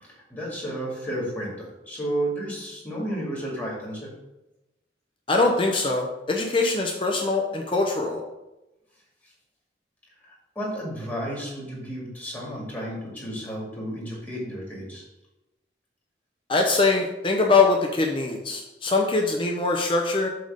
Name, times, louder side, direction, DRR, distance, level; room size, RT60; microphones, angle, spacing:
voice 1, 0.0-4.1 10.3-15.0, right 1 dB, 10° left, -5 dB, 2.5 m, -32 dB
voice 2, 5.3-8.2 16.5-20.3, left 3 dB, 30° left, 1 dB, 0.7 m, -23 dB
7.8 x 3.6 x 6.5 m, 0.98 s
head